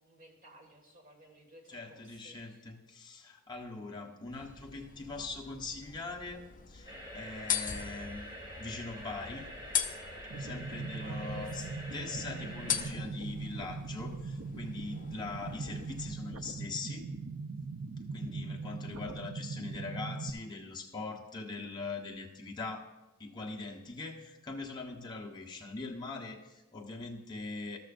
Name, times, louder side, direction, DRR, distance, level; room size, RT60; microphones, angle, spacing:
voice 1, 0.0-2.7 11.0-11.8, right 1 dB, 40° right, 1 dB, 2.0 m, -56 dB
voice 2, 1.7-9.5 10.4-11.7 11.9-17.1 18.1-22.9 23.2-27.8, left 3 dB, 20° left, -1 dB, 1.1 m, -42 dB
sound 1, 4.3-16.2, left 9 dB, 40° left, 0.6 m, -41 dB
sound 2, 6.9-12.9, equal, 20° right, 2.1 m, -46 dB
sound 3, 10.3-20.3, right 4 dB, 65° right, 0.7 m, -40 dB
13.5 x 13.0 x 2.6 m, 1.1 s
head